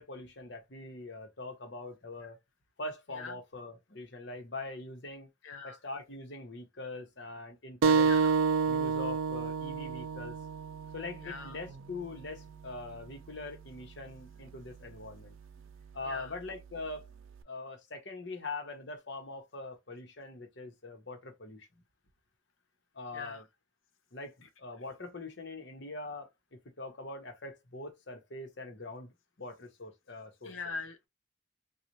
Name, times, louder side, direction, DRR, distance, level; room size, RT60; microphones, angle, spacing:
voice 1, 0.0-2.4 2.8-5.3 5.6-8.1 8.7-10.4 10.9-15.3 15.9-17.1 17.5-21.8 22.9-23.4 24.1-30.5, left 2 dB, 60° left, 1.0 m, -43 dB
voice 2, 5.4-5.8 8.0-8.3 11.2-11.6 16.0-16.4 23.1-23.4 24.4-24.5 30.4-31.1, left 4 dB, 75° left, 0.6 m, -42 dB
sound 1, 7.8-12.9, right 5 dB, 80° right, 0.4 m, -30 dB
4.0 x 2.4 x 3.0 m
head